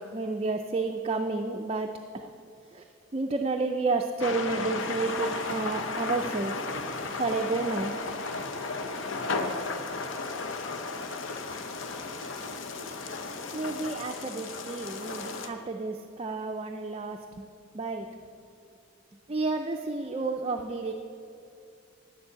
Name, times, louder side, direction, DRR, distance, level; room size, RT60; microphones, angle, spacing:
voice 1, 0.0-2.3 2.7-2.8 3.1-6.6 7.2-8.0 13.5-17.2 17.7-18.1 19.3-20.9, right 3 dB, 30° right, 3 dB, 0.4 m, -31 dB
sound 1, 4.2-15.5, left 3 dB, 65° left, 0.8 m, -34 dB
9.7 x 7.1 x 8.5 m, 2.6 s
head